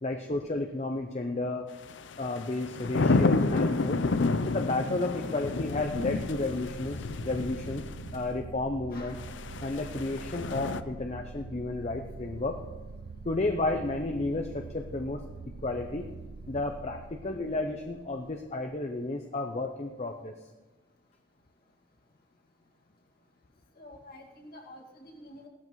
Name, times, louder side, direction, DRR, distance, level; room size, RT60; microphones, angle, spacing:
voice 1, 0.0-1.7 2.2-4.0 4.5-7.9 8.1-9.2 9.6-12.6 13.2-15.2 15.6-16.1 16.5-20.3, left 2 dB, 35° left, 4 dB, 0.6 m, -32 dB
sound 1, 1.9-8.2 9.2-10.8, left 3 dB, 75° left, 0.6 m, -30 dB
sound 2, 5.7-18.5, right 4 dB, 80° right, 0.6 m, -44 dB
voice 2, 8.9-9.2 23.8-25.5, left 1 dB, 55° left, 0 dB, 2.2 m, -48 dB
17.5 x 13.0 x 3.1 m, 1.3 s
head